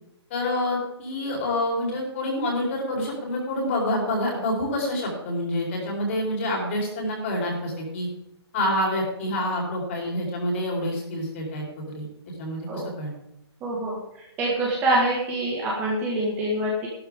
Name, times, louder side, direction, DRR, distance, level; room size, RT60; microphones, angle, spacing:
voice 1, 0.3-8.1 8.5-12.1 12.4-13.1, left 1 dB, 30° left, -1 dB, 4.1 m, -27 dB
voice 2, 13.6-16.9, right 1 dB, 15° right, -4 dB, 1.8 m, -25 dB
13.5 x 12.5 x 3.7 m, 0.83 s
hypercardioid pair, 170°, 14 cm